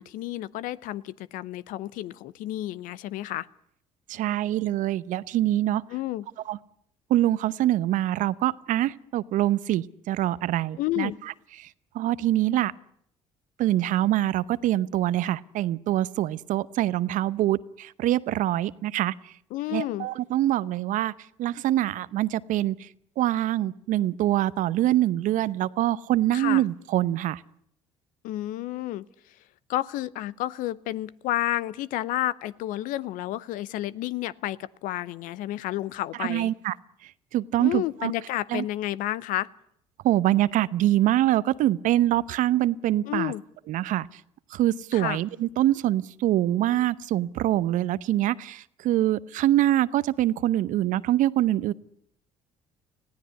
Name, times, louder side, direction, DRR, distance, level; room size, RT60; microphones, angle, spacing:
voice 1, 0.0-3.5 5.9-6.3 10.8-11.2 19.5-20.1 26.3-26.6 28.2-29.0 29.7-36.5 37.6-39.5 43.0-43.4 44.9-45.2, left 15 dB, 70° left, 19 dB, 0.8 m, -31 dB
voice 2, 4.1-5.8 6.5-6.6 7.1-11.1 11.6-11.7 11.9-12.7 13.6-19.1 19.7-21.1 21.4-22.9 23.2-27.4 36.2-36.7 37.0-38.1 38.5-38.6 40.0-43.3 43.7-44.2 44.5-51.7, right 13 dB, 65° right, 18 dB, 0.8 m, -24 dB
20.0 x 16.0 x 9.7 m, 0.69 s
hypercardioid pair, 60°, 14 cm